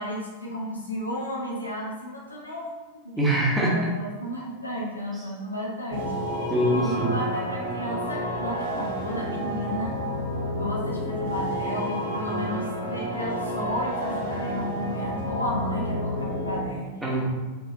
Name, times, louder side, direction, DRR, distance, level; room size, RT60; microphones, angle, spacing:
voice 1, 0.0-2.7 3.0-3.1 3.6-6.1 6.7-10.0 10.6-16.9, left 1 dB, 80° left, -2 dB, 0.9 m, -33 dB
voice 2, 3.2-3.8 5.1-5.2 6.5-7.2 17.0-17.3, right 1 dB, 10° right, -4 dB, 1.0 m, -24 dB
sound 1, 5.9-16.6, equal, 55° left, 1.3 m, -30 dB
4.4 x 3.7 x 2.7 m, 1.3 s
figure-of-eight pair, 90°, 0 cm